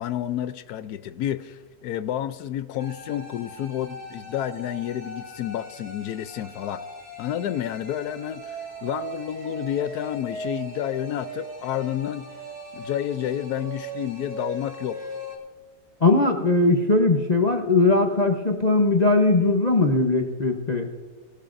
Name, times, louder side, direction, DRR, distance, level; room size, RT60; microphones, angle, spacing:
voice 1, 0.0-6.8 7.2-12.3 12.7-15.0, left 11 dB, 70° left, 1.0 m, -30 dB
sound 1, 2.8-15.4, right 1 dB, 10° left, 3.5 m, -39 dB
voice 2, 16.0-20.9, left 2 dB, 35° left, 0.7 m, -20 dB
24.5 x 13.0 x 2.6 m
omnidirectional pair, 1.9 m